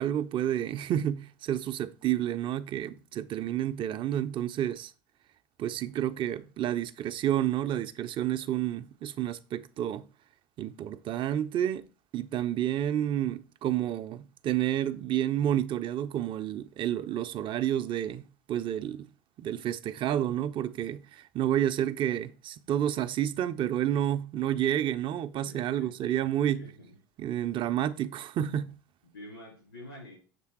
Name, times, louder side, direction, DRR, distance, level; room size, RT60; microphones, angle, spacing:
voice 1, 0.0-4.9 5.6-10.0 10.6-11.8 12.1-19.1 19.4-26.7 27.2-28.8, right 11 dB, 45° right, 0.5 m, -30 dB
voice 2, 25.4-25.9 26.5-26.9 29.1-30.2, left 1 dB, 90° left, 3.8 m, -47 dB
6.7 x 3.4 x 4.6 m
hypercardioid pair, 75°, 12 cm